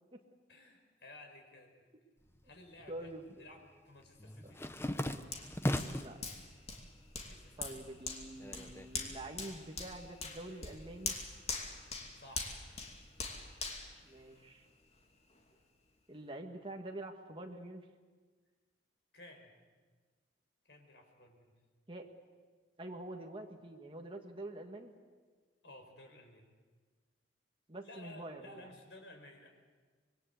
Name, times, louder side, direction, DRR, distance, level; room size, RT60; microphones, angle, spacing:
voice 1, 0.5-1.9 2.4-3.1 3.4-4.6 7.2-7.8 12.2-12.6 19.1-19.5 20.6-21.5 25.6-26.4 27.8-29.5, left 1 dB, 80° left, 4 dB, 5.0 m, -55 dB
sound 1, 2.3-3.1 3.4-6.2 6.7-7.3 7.6-9.3, left 1 dB, 15° left, 0.9 m, -38 dB
voice 2, 2.9-3.4 5.9-6.2 7.6-11.1 14.0-14.7 16.1-17.8 21.9-22.1 22.8-24.9 27.7-28.7, right 1 dB, 30° right, 2 dB, 1.8 m, -46 dB
Hands, 5.3-14.8 15.3-15.4, left 4 dB, 35° left, 2.7 m, -43 dB
26.0 x 22.0 x 8.2 m, 1.5 s
head